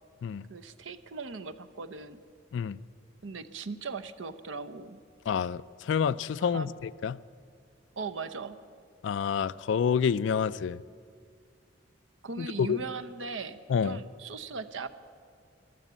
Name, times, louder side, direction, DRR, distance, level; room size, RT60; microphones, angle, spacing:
voice 1, 0.5-2.2 3.2-5.0 6.4-6.7 8.0-8.6 12.2-14.9, right 4 dB, 85° right, 0.8 m, -39 dB
voice 2, 5.3-7.2 9.0-10.8 12.4-12.8 13.7-14.0, left 7 dB, 70° left, 0.3 m, -28 dB
14.5 x 12.0 x 8.0 m
head